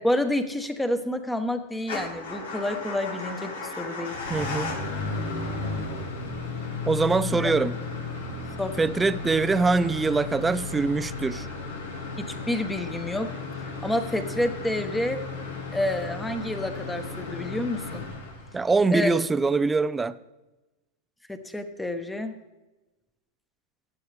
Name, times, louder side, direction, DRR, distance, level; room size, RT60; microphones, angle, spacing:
voice 1, 0.0-4.2 7.4-7.5 8.6-8.8 12.2-13.4 13.8-15.2 15.7-18.0 18.9-19.1 21.3-22.3, left 1 dB, 5° left, 1.1 m, -29 dB
Motor vehicle (road) / Engine starting / Idling, 1.8-18.8, left 4 dB, 85° left, 2.4 m, -34 dB
voice 2, 4.3-4.8 6.9-7.7 8.8-11.5 18.5-20.2, right 4 dB, 15° right, 0.5 m, -23 dB
15.5 x 9.6 x 3.5 m
hypercardioid pair, 115°, 0 cm